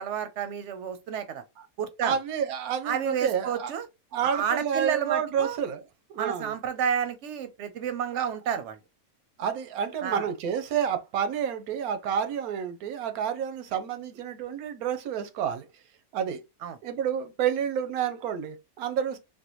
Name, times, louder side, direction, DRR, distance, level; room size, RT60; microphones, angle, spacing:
voice 1, 0.0-1.4 1.8-2.2 2.8-3.9 4.2-5.6 6.2-8.8 10.0-10.2 16.6-16.8, right 8 dB, 65° right, 0.8 m, -30 dB
voice 2, 2.0-3.7 4.1-5.8 6.1-6.5 8.1-8.3 9.4-15.7 16.1-16.4 16.8-19.2, right 8 dB, 90° right, 1.1 m, -29 dB
3.4 x 2.2 x 2.9 m
omnidirectional pair, 1.5 m